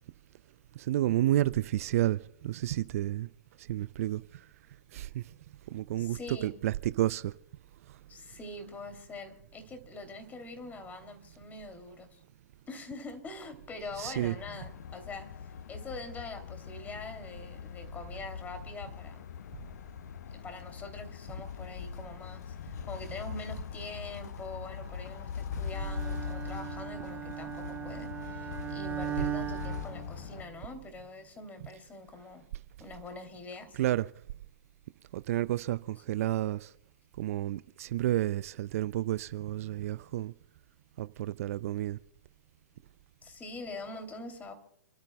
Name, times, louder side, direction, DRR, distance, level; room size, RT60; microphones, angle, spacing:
voice 1, 0.8-3.3 3.6-4.2 4.9-5.2 5.7-7.3 14.0-14.4 25.5-25.6 33.8-34.1 35.1-36.7 37.2-40.3 41.0-42.0, right 14 dB, 50° right, 0.4 m, -30 dB
voice 2, 6.0-6.5 8.1-12.2 12.7-19.2 20.3-32.4 32.8-33.7 43.2-44.5, left 3 dB, 15° left, 2.8 m, -44 dB
sound 1, 14.2-30.4, left 8 dB, 65° left, 0.6 m, -41 dB
Bowed string instrument, 25.7-30.7, right 11 dB, 20° right, 1.0 m, -39 dB
30.0 x 13.0 x 2.2 m
figure-of-eight pair, 115°, 10 cm